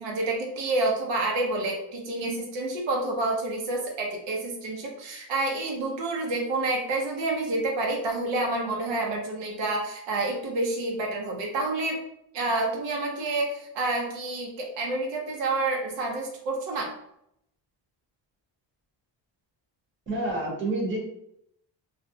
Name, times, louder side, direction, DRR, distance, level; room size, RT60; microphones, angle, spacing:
voice 1, 0.0-12.0 12.3-16.9, right 2 dB, 90° right, 0 dB, 0.7 m, -28 dB
voice 2, 20.1-21.0, right 2 dB, 25° right, -2 dB, 0.7 m, -28 dB
2.4 x 2.1 x 2.6 m, 0.75 s
cardioid pair, 130°, 44 cm